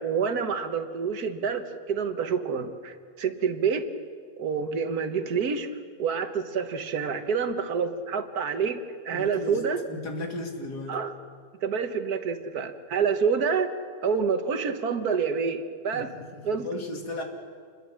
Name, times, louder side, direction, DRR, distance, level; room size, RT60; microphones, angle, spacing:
voice 1, 0.0-3.8 4.4-5.7 6.0-8.8 9.0-9.8 10.9-11.1 11.6-13.7 14.0-16.1 16.4-16.7, right 6 dB, 70° right, 9 dB, 1.7 m, -27 dB
voice 2, 9.1-9.6 9.9-11.0 15.9-17.2, left 2 dB, 80° left, 3 dB, 3.0 m, -36 dB
28.0 x 21.5 x 6.3 m, 2.1 s
omnidirectional pair, 1.7 m